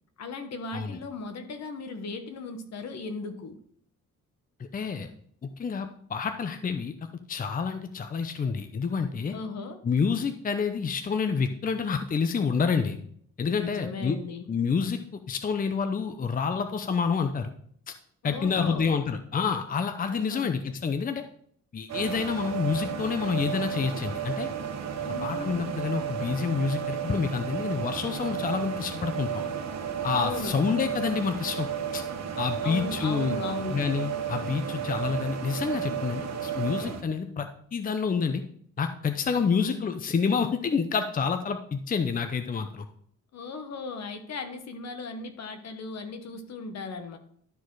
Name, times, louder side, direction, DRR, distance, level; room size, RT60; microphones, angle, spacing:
voice 1, 0.2-3.6 9.3-9.8 13.6-14.5 18.2-18.9 20.1-20.6 25.0-25.8 30.1-30.6 32.6-33.9 39.3-39.8 43.3-47.2, left 3 dB, 60° left, 7 dB, 1.3 m, -37 dB
voice 2, 4.7-5.1 5.4-6.9 7.3-9.3 9.8-13.0 13.4-14.2 14.5-17.5 18.2-21.2 21.7-24.5 25.2-29.4 30.0-31.7 31.9-32.0 32.4-33.4 33.7-38.4 38.8-42.8, left 5 dB, 30° left, 7 dB, 0.7 m, -28 dB
sound 1, 21.9-37.0, right 8 dB, 60° right, 1.2 m, -33 dB
12.0 x 4.2 x 4.8 m, 0.63 s
cardioid pair, 90°, 30 cm